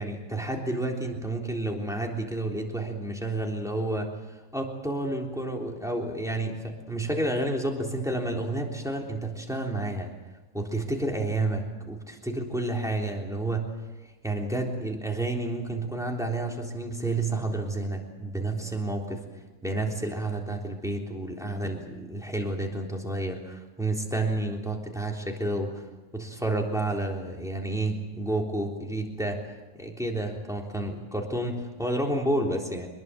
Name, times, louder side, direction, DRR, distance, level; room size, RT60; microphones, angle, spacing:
voice 1, 0.0-4.1 4.5-10.1 10.5-13.7 14.2-19.2 19.6-25.9 26.1-29.4 29.8-32.9, right 2 dB, ahead, 0 dB, 3.5 m, -30 dB
24.5 x 21.0 x 7.7 m, 1.1 s
omnidirectional pair, 1.5 m